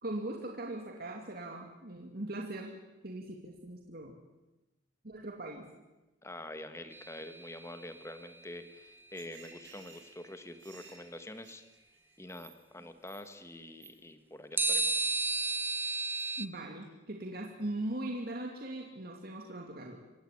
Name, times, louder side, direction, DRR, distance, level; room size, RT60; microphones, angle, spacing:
voice 1, 0.0-2.8 3.0-4.2 5.0-5.7 16.4-20.0, right 1 dB, 55° right, 1 dB, 2.7 m, -40 dB
voice 2, 6.2-11.6 12.2-15.1, left 1 dB, 15° left, 9 dB, 1.8 m, -46 dB
sound 1, 6.9-8.2 14.6-16.5, right 3 dB, 10° right, 0.9 m, -33 dB
sound 2, 9.0-12.5 12.8-13.5 13.8-13.9 14.5-14.7 15.2-15.4 16.1-16.3 16.6-16.8, right 6 dB, 80° right, 6.8 m, -56 dB
27.5 x 16.5 x 8.9 m, 1.0 s
head